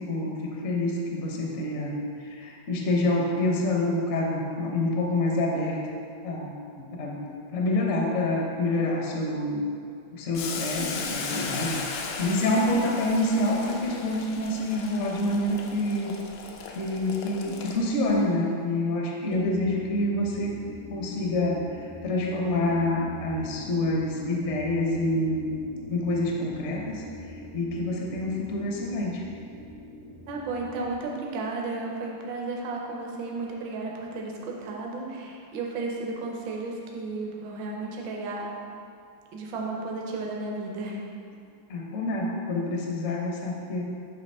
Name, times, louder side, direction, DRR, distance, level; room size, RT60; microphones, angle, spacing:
voice 1, 0.0-5.8 6.2-6.5 6.8-7.2 7.5-9.7 10.1-11.8 12.2-16.2 16.7-20.5 20.9-25.5 25.9-29.2 41.7-43.8, left 1 dB, 55° left, -1 dB, 0.8 m, -27 dB
Boiling, 10.3-18.1, left 4 dB, 80° left, 1.4 m, -37 dB
sound 1, 19.3-31.0, equal, 25° right, 0.5 m, -44 dB
voice 2, 19.3-19.8 30.3-38.6 39.3-41.0, right 3 dB, 75° right, -1 dB, 1.4 m, -33 dB
7.6 x 2.9 x 5.3 m, 2.4 s
omnidirectional pair, 2.1 m